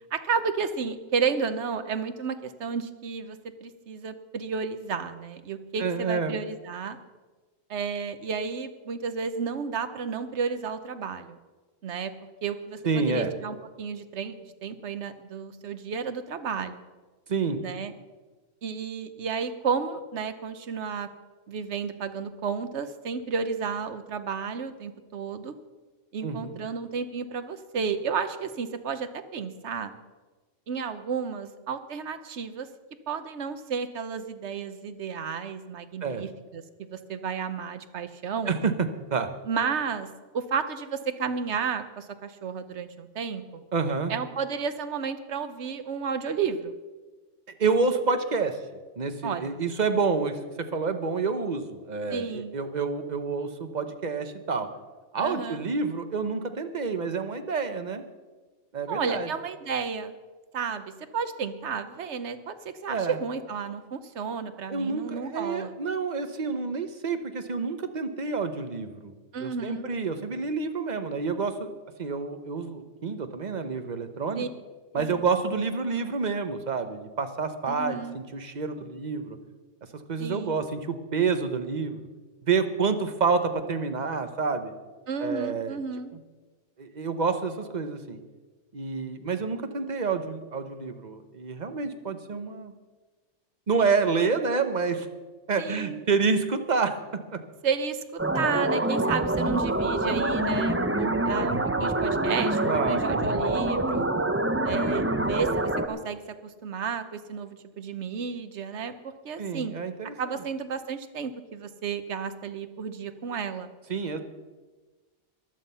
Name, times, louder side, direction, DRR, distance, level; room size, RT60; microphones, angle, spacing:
voice 1, 0.1-7.0 7.7-11.4 11.8-12.1 12.4-14.3 14.6-16.8 17.6-17.9 18.6-21.1 21.5-25.6 26.1-29.9 30.7-32.7 33.1-38.5 39.5-40.1 40.3-43.6 44.1-46.7 49.2-49.5 52.1-52.6 55.2-55.7 58.9-60.1 60.5-65.7 69.3-69.9 74.3-74.5 74.9-75.2 77.7-78.2 80.2-80.7 85.1-86.1 95.6-96.0 97.6-104.1 104.6-109.7 110.2-113.7, right 6 dB, 70° right, 11 dB, 1.2 m, -32 dB
voice 2, 5.8-6.3 12.8-13.3 17.3-17.6 26.2-26.6 36.0-36.2 38.5-38.7 39.1-39.3 43.7-44.1 47.6-48.6 49.0-50.4 50.7-54.7 55.1-58.0 58.7-59.3 62.9-63.2 64.7-69.1 69.4-71.7 72.0-74.5 74.9-79.4 80.1-82.0 82.5-84.7 85.2-85.8 86.8-88.2 88.7-92.7 93.7-95.1 95.5-97.0 97.3-97.4 102.6-103.0 109.4-110.1 113.9-114.2, right 4 dB, 40° right, 8 dB, 1.1 m, -28 dB
sound 1, 98.2-105.9, right 2 dB, 15° right, 0.7 m, -26 dB
15.0 x 11.5 x 5.6 m, 1.3 s
omnidirectional pair, 1.2 m